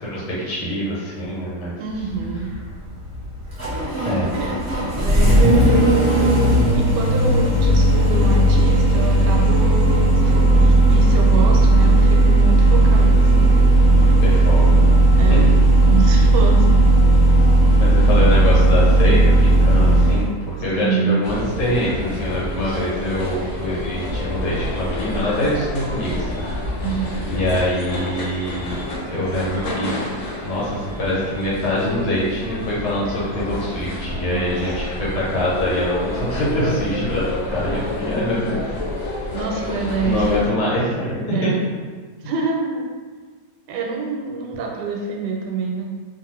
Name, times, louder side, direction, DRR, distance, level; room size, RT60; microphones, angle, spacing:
voice 1, 0.0-1.8 4.0-4.3 14.0-15.0 15.3-15.5 17.8-26.4 27.2-29.9 30.4-38.6 40.0-41.5, left 1 dB, 80° left, -7 dB, 1.5 m, -24 dB
voice 2, 1.8-2.5 4.3-4.6 5.0-6.3 6.7-13.5 15.2-16.8 20.8-21.2 22.6-22.8 26.8-27.2 34.3-34.6 39.3-40.3 41.3-41.6 42.2-42.8 43.7-45.9, right 5 dB, 90° right, 0 dB, 1.2 m, -26 dB
Engine starting, 1.9-20.3, right 1 dB, 15° right, 0.7 m, -15 dB
Tower Hill - Station, 21.2-40.5, left 1 dB, 65° left, 0.8 m, -29 dB
2.9 x 2.4 x 3.0 m, 1.5 s
omnidirectional pair, 1.8 m